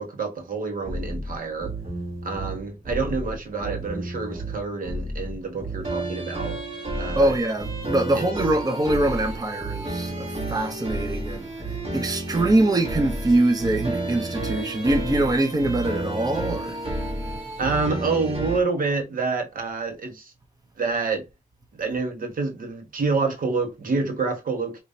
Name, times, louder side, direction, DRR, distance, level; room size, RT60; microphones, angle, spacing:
voice 1, 0.0-1.7 2.2-6.5 6.9-7.3 8.1-8.3 17.6-20.3 20.8-21.2 21.7-24.8, right 4 dB, 80° right, 1.4 m, -27 dB
sound 1, 0.8-18.6, right 2 dB, 45° right, 1.7 m, -31 dB
voice 2, 7.2-16.8, right 1 dB, 25° right, 0.8 m, -23 dB
5.0 x 3.0 x 2.7 m
wide cardioid pair, 100°, 14 cm